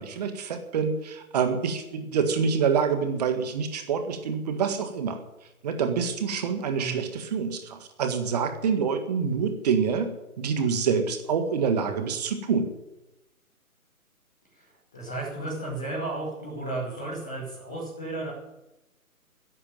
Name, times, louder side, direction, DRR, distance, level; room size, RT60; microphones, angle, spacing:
voice 1, 0.0-5.2 5.6-10.1 10.4-12.7, right 6 dB, 30° right, 8 dB, 1.8 m, -26 dB
voice 2, 14.5-18.3, right 2 dB, 5° left, -9 dB, 0.6 m, -34 dB
13.5 x 11.0 x 9.1 m, 0.93 s
figure-of-eight pair, 145°, 44 cm